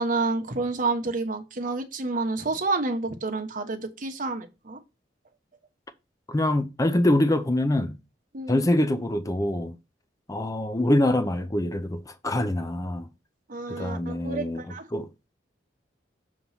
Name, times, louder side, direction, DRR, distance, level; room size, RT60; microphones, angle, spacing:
voice 1, 0.0-4.8 8.3-8.6 13.5-14.9, right 3 dB, 45° right, 1.0 m, -29 dB
voice 2, 6.3-8.0 8.5-9.8 10.3-13.1 13.7-14.6 14.9-15.3, left 1 dB, 20° left, 0.5 m, -25 dB
6.9 x 3.1 x 5.5 m
head